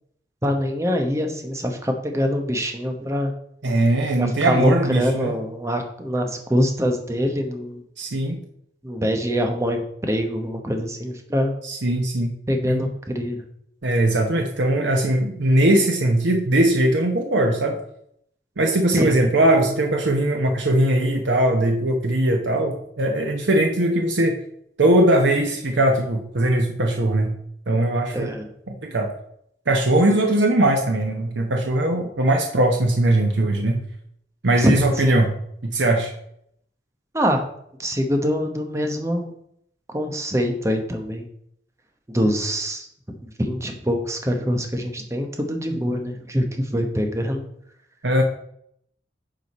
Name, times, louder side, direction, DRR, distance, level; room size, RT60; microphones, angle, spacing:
voice 1, 0.4-3.3 4.2-7.8 8.8-11.5 12.5-13.4 18.9-19.2 28.1-28.5 34.6-35.2 37.1-37.4 37.8-39.3 39.9-41.3 42.1-47.4, equal, 15° right, 4 dB, 1.0 m, -24 dB
voice 2, 3.6-5.4 8.0-8.4 11.6-12.3 12.6-12.8 13.8-17.8 18.6-24.4 24.8-27.3 27.7-28.3 28.7-29.1 29.7-33.8 34.4-35.3 35.6-36.1 48.0-48.2, right 1 dB, 85° right, 2 dB, 1.0 m, -20 dB
9.3 x 5.0 x 4.2 m, 0.71 s
head